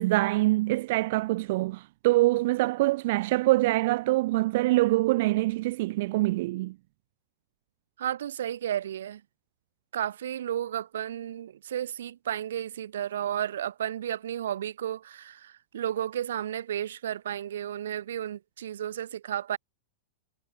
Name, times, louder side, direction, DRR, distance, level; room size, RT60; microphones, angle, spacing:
voice 1, 0.0-6.7, right 19 dB, 40° right, 1.3 m, -24 dB
voice 2, 8.0-9.2 9.9-19.6, right 10 dB, 75° right, 3.0 m, -33 dB
supercardioid pair, 180°, 0 cm